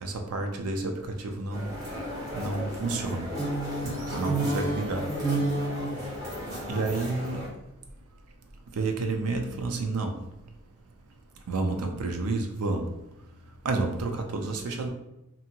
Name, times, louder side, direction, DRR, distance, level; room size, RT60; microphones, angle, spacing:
voice 1, 0.0-1.7 2.3-3.2 4.1-5.1 6.7-7.5 8.8-10.1 11.5-12.9 13.6-14.9, right 3 dB, 80° right, 4 dB, 0.5 m, -30 dB
sound 1, 1.5-7.5, right 1 dB, 40° right, 1.3 m, -31 dB
2.8 x 2.5 x 2.7 m, 0.91 s
head